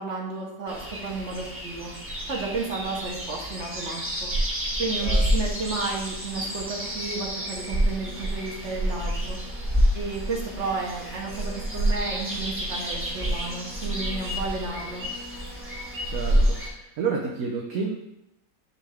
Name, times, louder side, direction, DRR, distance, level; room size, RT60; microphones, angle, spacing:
voice 1, 0.0-1.9 2.3-4.3 4.8-9.4 9.9-15.1, right 3 dB, 45° right, -1 dB, 1.4 m, -32 dB
sound 1, 0.7-16.7, equal, 10° right, 1.2 m, -28 dB
voice 2, 16.0-17.9, right 5 dB, 60° right, -2 dB, 1.1 m, -30 dB
9.9 x 3.5 x 3.5 m, 0.86 s
omnidirectional pair, 1.9 m